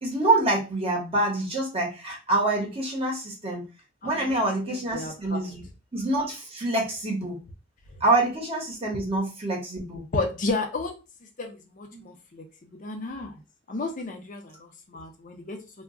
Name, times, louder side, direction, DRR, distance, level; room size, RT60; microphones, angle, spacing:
voice 1, 0.0-3.7 4.0-5.6 5.9-7.4 8.0-10.1 11.9-12.0, right 2 dB, 30° right, -1 dB, 1.0 m, -26 dB
voice 2, 4.0-5.5 10.1-11.0 11.4-12.4 12.8-13.3 13.7-15.6, left 3 dB, 45° left, 4 dB, 0.5 m, -32 dB
2.3 x 2.1 x 3.6 m, 0.29 s
head